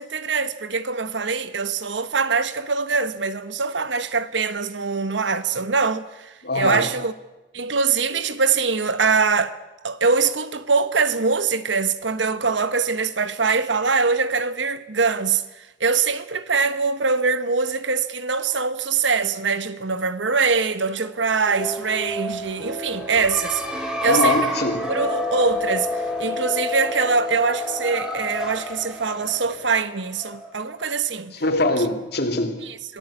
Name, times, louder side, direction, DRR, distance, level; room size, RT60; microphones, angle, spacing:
voice 1, 0.0-7.1 7.5-9.6 9.8-24.6 24.9-31.3 31.8-31.9 32.6-33.0, right 4 dB, 75° right, 1.3 m, -23 dB
voice 2, 6.4-6.9 24.0-24.9 31.4-32.6, left 2 dB, 60° left, 3.1 m, -22 dB
sound 1, 21.3-30.8, left 1 dB, 5° right, 3.4 m, -29 dB
26.5 x 17.5 x 8.7 m
head